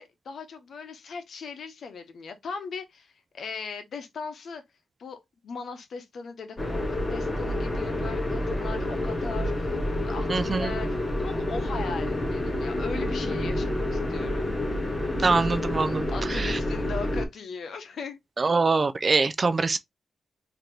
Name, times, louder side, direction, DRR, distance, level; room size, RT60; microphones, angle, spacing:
voice 1, 0.0-4.6 5.0-14.5 15.6-18.2, left 5 dB, 65° left, 0.9 m, -39 dB
sound 1, 6.6-17.2, left 1 dB, 20° left, 1.4 m, -28 dB
voice 2, 10.3-10.7 15.2-16.6 18.4-19.8, right 4 dB, 35° right, 0.4 m, -24 dB
3.9 x 2.9 x 3.3 m
wide cardioid pair, 125°, 0 cm